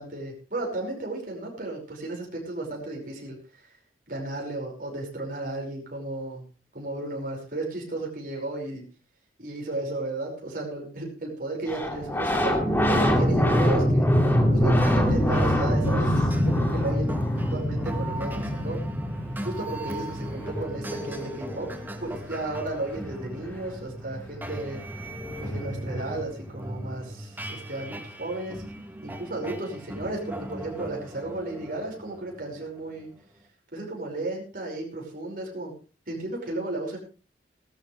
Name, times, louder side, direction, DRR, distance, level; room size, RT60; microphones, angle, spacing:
voice 1, 0.0-3.4 4.1-6.4 6.7-8.8 9.4-12.6 12.9-14.1 14.5-17.2 17.5-18.8 19.4-21.7 22.0-24.8 25.4-28.6 29.0-33.1 33.7-35.7 36.1-37.0, right 2 dB, 50° right, -1 dB, 5.5 m, -34 dB
sound 1, 11.7-22.1 24.2-24.3 24.4-26.2, equal, 10° left, 2.3 m, -25 dB
sound 2, 14.6-33.4, right 1 dB, 10° right, 1.5 m, -38 dB
18.0 x 13.0 x 3.3 m, 0.34 s
head